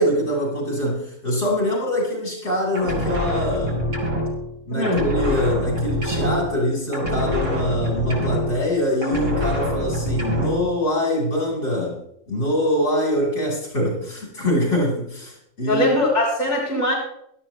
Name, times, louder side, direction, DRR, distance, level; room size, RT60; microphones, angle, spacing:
voice 1, 0.0-3.8 4.7-12.0 12.3-16.0, equal, 65° left, -2 dB, 4.7 m, -24 dB
sound 1, 2.7-4.6 4.8-6.7 6.9-8.8 9.0-10.7, equal, 75° right, 3.1 m, -25 dB
voice 2, 4.7-5.0 15.7-16.9, left 1 dB, 35° left, -5 dB, 3.8 m, -21 dB
16.5 x 12.5 x 3.1 m, 0.73 s
omnidirectional pair, 1.3 m